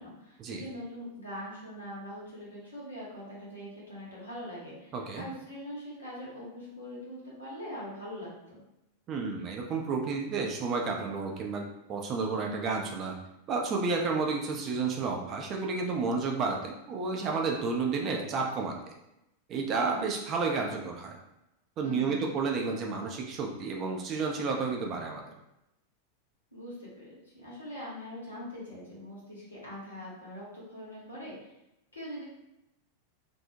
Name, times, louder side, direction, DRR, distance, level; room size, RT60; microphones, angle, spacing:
voice 1, 0.0-8.6 21.8-22.3 26.5-27.1 27.3-31.5 31.9-32.2, equal, 80° left, -6 dB, 1.1 m, -42 dB
voice 2, 4.9-5.3 9.1-13.2 13.5-18.9 19.5-21.2 21.8-25.2, right 4 dB, 30° right, 1 dB, 0.4 m, -31 dB
2.5 x 2.1 x 2.7 m, 0.88 s
figure-of-eight pair, 90°, 0 cm